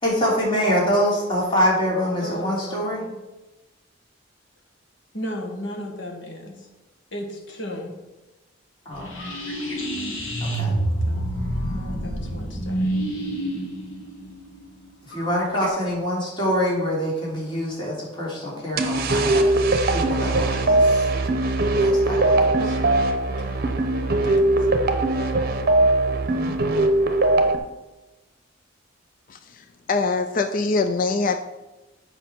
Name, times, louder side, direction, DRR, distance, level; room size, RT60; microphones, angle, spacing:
voice 1, 0.0-3.0 8.8-9.1 10.4-10.7 15.0-19.5 19.9-21.1 21.8-22.5 26.2-26.5, equal, 25° left, -5 dB, 3.1 m, -25 dB
voice 2, 2.2-3.2 5.1-6.7 7.1-7.9 10.6-11.4 11.7-12.9 22.6-22.9 23.3-23.6 24.2-24.5, left 1 dB, 65° left, 2 dB, 1.7 m, -35 dB
sound 1, 8.9-15.7, right 1 dB, 90° left, 1.9 m, -28 dB
sound 2, 18.8-27.6, right 2 dB, 50° right, 0.8 m, -20 dB
voice 3, 29.9-31.4, left 3 dB, 45° left, 8 dB, 0.4 m, -23 dB
8.2 x 5.4 x 6.0 m, 1.1 s
head